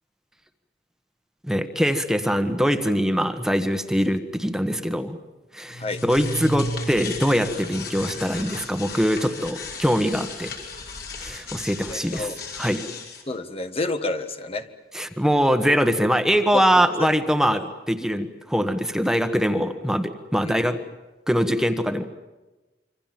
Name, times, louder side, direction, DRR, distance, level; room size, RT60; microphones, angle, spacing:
voice 1, 1.4-5.2 5.5-10.5 11.2-12.3 12.6-12.8 14.9-20.8 21.3-22.0, equal, 5° right, 8 dB, 1.3 m, -23 dB
sound 1, 5.7-13.2, left 2 dB, 60° left, 5.5 m, -34 dB
voice 2, 11.9-12.4 13.3-14.7 16.5-16.6 17.0-17.2 17.5-17.6 20.4-20.7, left 2 dB, 35° left, 8 dB, 1.4 m, -29 dB
26.5 x 25.5 x 7.6 m, 1.1 s
head